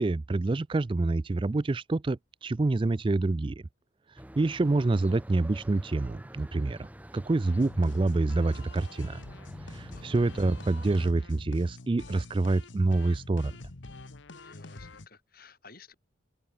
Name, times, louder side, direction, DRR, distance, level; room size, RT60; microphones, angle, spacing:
voice 1, 0.0-3.6 4.4-6.9 7.1-9.2 9.7-13.6, right 2 dB, 25° right, 0.3 m, -27 dB
sound 1, 4.2-11.1, equal, 10° right, 1.3 m, -47 dB
sound 2, 7.4-15.1, left 2 dB, 65° left, 1.2 m, -46 dB
voice 2, 9.9-10.2 14.3-15.9, left 4 dB, 45° left, 7.0 m, -54 dB
open air
head